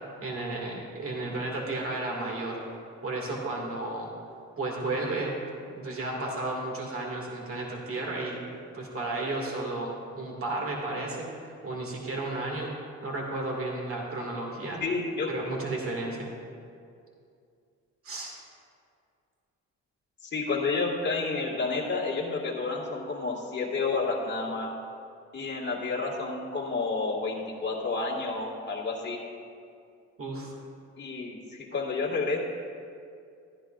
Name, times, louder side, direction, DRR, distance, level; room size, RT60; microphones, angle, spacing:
voice 1, 0.2-2.6 3.0-4.1 4.6-5.4 5.7-8.4 8.7-12.7 13.0-14.8 15.3-16.3 18.0-18.3 30.2-30.5, right 2 dB, 45° right, -1 dB, 2.2 m, -33 dB
voice 2, 14.8-15.6 20.2-24.7 25.3-29.2 31.0-32.4, left 3 dB, 35° left, -3 dB, 2.0 m, -30 dB
14.0 x 10.5 x 2.5 m, 2.4 s
cardioid pair, 90°, 30 cm